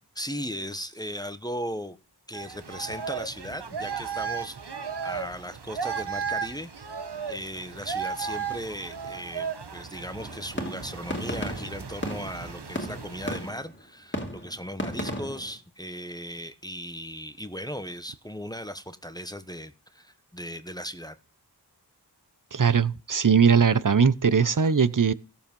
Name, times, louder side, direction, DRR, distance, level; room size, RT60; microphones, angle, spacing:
voice 1, 0.1-2.0 2.3-4.7 5.0-6.7 7.3-21.1, equal, 10° left, 1.1 m, -37 dB
sound 1, 2.3-13.5, right 6 dB, 85° right, 1.3 m, -35 dB
sound 2, 10.2-13.8 14.1-15.6, equal, 30° left, 3.0 m, -35 dB
voice 2, 22.5-25.1, right 6 dB, 50° right, 0.8 m, -20 dB
16.5 x 7.3 x 5.4 m
wide cardioid pair, 55°, 39 cm